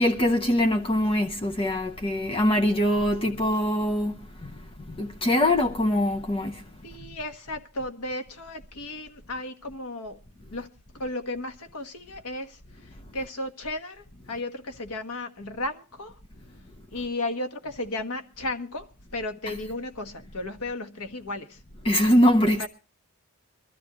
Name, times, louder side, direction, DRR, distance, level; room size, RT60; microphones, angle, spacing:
voice 1, 0.0-6.6 19.5-19.6 21.8-22.7, left 1 dB, 25° left, 0.8 m, -23 dB
voice 2, 6.8-10.2 10.5-10.7 11.0-12.6 13.1-16.1 16.9-21.6 22.6-22.7, left 2 dB, 90° left, 1.5 m, -34 dB
23.5 x 13.0 x 3.0 m
head